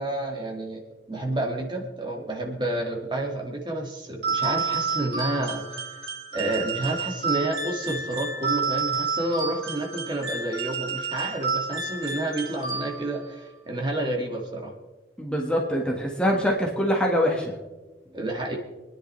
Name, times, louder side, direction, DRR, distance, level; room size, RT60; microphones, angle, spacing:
voice 1, 0.0-5.8 6.3-14.7 18.1-18.6, right 1 dB, 25° right, 1 dB, 1.9 m, -30 dB
sound 1, 4.2-13.3, right 5 dB, 65° right, 3.0 m, -30 dB
voice 2, 15.2-17.5, equal, 5° left, -1 dB, 1.4 m, -24 dB
28.5 x 10.0 x 3.2 m, 1.2 s
head